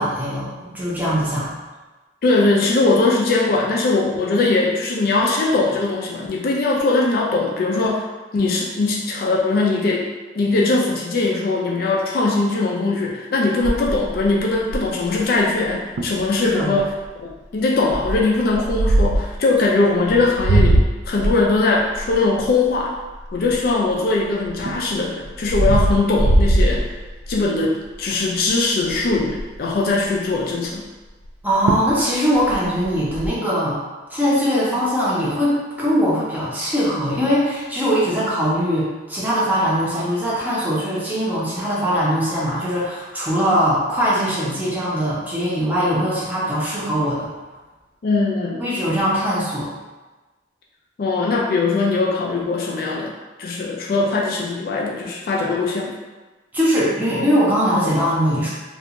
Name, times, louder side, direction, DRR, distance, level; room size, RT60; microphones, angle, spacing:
voice 1, 0.0-1.5 16.4-16.8 31.4-33.8 34.1-47.3 48.6-49.7 56.5-58.5, equal, 10° right, -8 dB, 0.6 m, -21 dB
voice 2, 2.2-8.1 8.3-10.1 10.4-16.9 17.5-22.9 23.3-26.9 27.3-30.8 48.0-48.6 51.0-56.0, left 3 dB, 50° left, -2 dB, 0.3 m, -20 dB
sound 1, 13.6-15.1 15.6-15.7 16.0-16.2 16.8-17.1 17.9-19.4 20.0-23.9 24.4-27.5 27.9-28.2 28.5-28.6 28.8-29.6 31.3-31.4 31.7-32.0 32.3-33.3, right 1 dB, 85° right, 0.3 m, -21 dB
2.4 x 2.2 x 2.8 m, 1.2 s
head